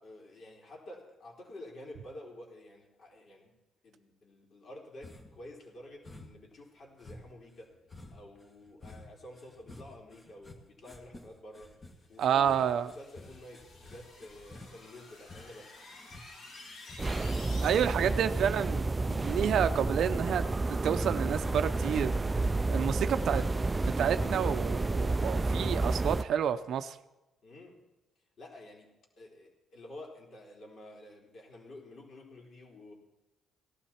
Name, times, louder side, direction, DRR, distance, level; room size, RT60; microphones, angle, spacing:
voice 1, 0.0-3.5 3.8-7.8 8.1-15.7 17.9-18.0 27.4-27.8 28.4-28.9 29.2-32.9, left 1 dB, 55° left, 0 dB, 3.8 m, -50 dB
sound 1, 5.0-5.4 6.0-6.5 7.0-19.6 19.9-21.1 21.4-23.5 23.8-24.3, left 2 dB, 25° left, 1.7 m, -51 dB
voice 2, 12.2-12.9 17.6-22.3 22.7-23.4 23.8-27.0, right 8 dB, 70° right, 11 dB, 0.5 m, -30 dB
sound 2, 12.3-18.3, left 2 dB, 70° left, 4.6 m, -51 dB
sound 3, 17.0-26.2, right 3 dB, 20° right, 0.4 m, -30 dB
17.5 x 12.5 x 4.3 m, 1.0 s
cardioid pair, 90°, 0 cm